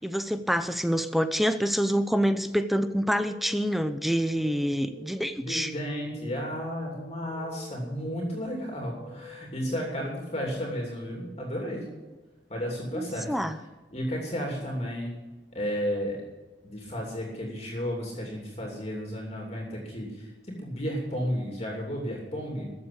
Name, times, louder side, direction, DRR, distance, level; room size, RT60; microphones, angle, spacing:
voice 1, 0.0-5.7 12.9-13.6, equal, ahead, 10 dB, 0.6 m, -27 dB
sound 1, 2.5-12.1, right 1 dB, 60° right, 4.3 m, -48 dB
voice 2, 5.4-11.9 12.5-13.3 13.6-13.7 13.9-15.1 15.5-16.2 16.6-20.3 20.6-22.7, equal, 35° left, -1 dB, 2.9 m, -33 dB
14.0 x 7.6 x 8.6 m, 1.2 s
head